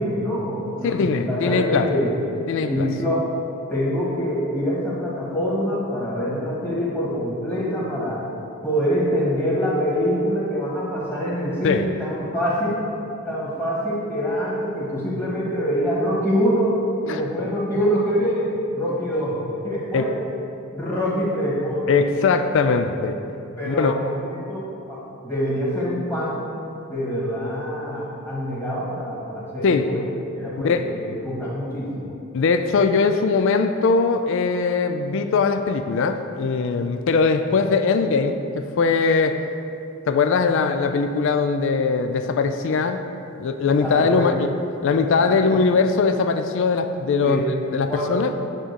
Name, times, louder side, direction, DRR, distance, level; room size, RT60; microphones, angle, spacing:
voice 1, 0.0-2.2 2.6-3.2 3.7-8.2 8.6-12.8 13.3-18.5 18.7-20.2 20.7-22.3 23.6-26.4 26.9-30.0 30.4-32.1 43.8-44.3 45.3-45.4 47.2-47.5 47.9-48.1, equal, 10° left, -7 dB, 1.9 m, -25 dB
voice 2, 0.8-1.9 2.5-2.9 11.6-11.9 17.1-17.2 19.9-20.1 21.9-23.2 23.6-23.9 29.6-29.9 30.6-30.8 32.3-39.4 40.1-43.0 43.4-44.5 44.8-47.4 47.7-48.3, left 4 dB, 55° left, 8 dB, 0.4 m, -21 dB
8.7 x 3.8 x 6.8 m, 2.7 s
head